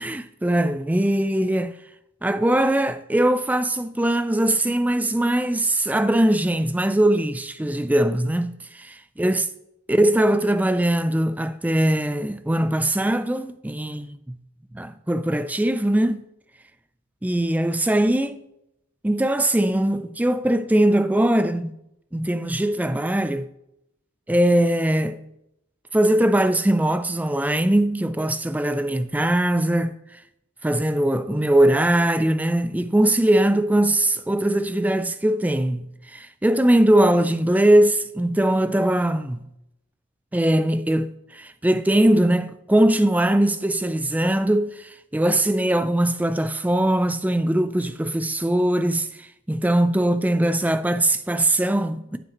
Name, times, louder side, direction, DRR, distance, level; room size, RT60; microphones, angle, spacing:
voice 1, 0.0-1.7 2.2-8.9 9.2-9.5 9.9-14.4 14.7-16.2 17.2-18.4 19.0-21.7 22.1-23.5 24.3-25.2 25.9-29.9 30.6-39.5 40.3-52.2, right 1 dB, 10° right, 0.3 m, -21 dB
15.0 x 5.1 x 2.9 m
head